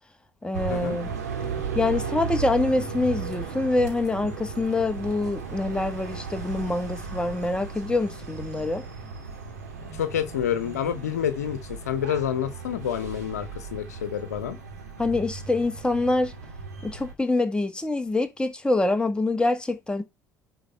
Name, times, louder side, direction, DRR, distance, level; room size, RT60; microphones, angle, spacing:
voice 1, 0.4-1.1 1.8-8.8 15.0-16.3 16.8-20.0, left 2 dB, 10° left, 1.9 m, -25 dB
sound 1, 0.5-17.1, right 5 dB, 85° right, 2.5 m, -36 dB
voice 2, 9.9-14.6, left 9 dB, 80° left, 1.0 m, -28 dB
10.0 x 3.9 x 5.5 m
figure-of-eight pair, 60°, 9 cm